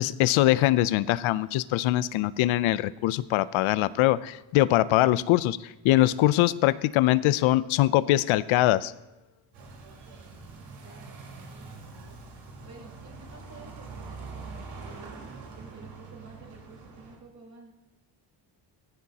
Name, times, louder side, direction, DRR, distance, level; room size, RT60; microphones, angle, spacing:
voice 1, 0.0-8.9, left 15 dB, 85° left, 17 dB, 0.6 m, -23 dB
sound 1, 9.5-17.2, right 4 dB, 85° right, 4.4 m, -44 dB
voice 2, 9.8-10.4 10.8-12.2 12.6-17.7, right 3 dB, 35° right, -2 dB, 4.4 m, -52 dB
15.0 x 14.5 x 2.9 m, 1.1 s
cardioid pair, 125°, 47 cm